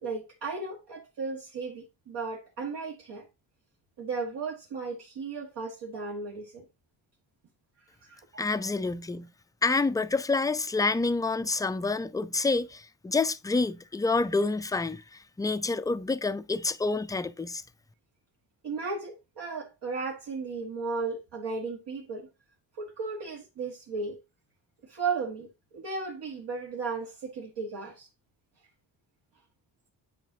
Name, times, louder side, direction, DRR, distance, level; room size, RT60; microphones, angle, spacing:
voice 1, 0.0-3.2 4.0-6.6 8.0-8.4 18.6-22.3 22.8-24.2 24.8-25.5 25.7-28.1, right 4 dB, 75° right, 1.6 m, -35 dB
voice 2, 8.4-9.3 9.6-17.6, left 3 dB, 10° left, 0.3 m, -28 dB
9.2 x 4.9 x 2.7 m
cardioid pair, 105°, 42 cm